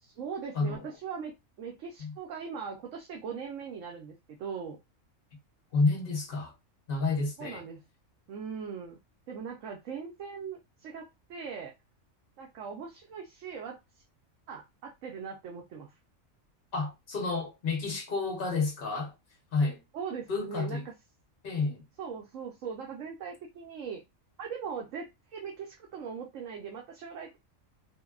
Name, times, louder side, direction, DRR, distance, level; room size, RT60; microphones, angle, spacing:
voice 1, 0.0-4.8 7.4-7.8 8.3-9.0 9.3-11.7 12.4-13.8 14.5-15.9 19.9-20.8 22.0-24.0 24.4-27.4, right 6 dB, 75° right, 1.0 m, -40 dB
voice 2, 0.5-0.9 2.0-2.1 5.7-6.5 6.9-7.7 16.7-19.1 19.5-19.8 20.3-20.8 21.4-21.8, left 3 dB, 45° left, 1.1 m, -30 dB
3.3 x 2.1 x 2.3 m
omnidirectional pair, 1.4 m